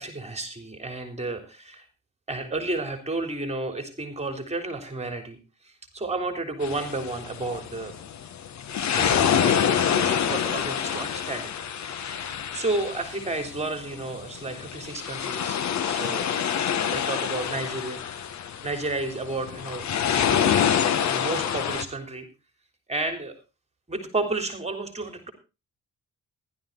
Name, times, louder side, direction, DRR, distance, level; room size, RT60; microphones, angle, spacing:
voice 1, 0.0-1.9 2.3-5.4 5.6-7.9 8.9-11.5 11.8-16.3 16.6-18.0 18.6-19.9 20.1-20.4 21.0-22.3 22.9-23.4 23.9-25.3, right 2 dB, 20° right, 6 dB, 3.5 m, -32 dB
sound 1, 6.6-21.8, left 8 dB, 65° left, 1.6 m, -27 dB
15.5 x 12.0 x 3.9 m, 0.30 s
cardioid pair, 90°, 30 cm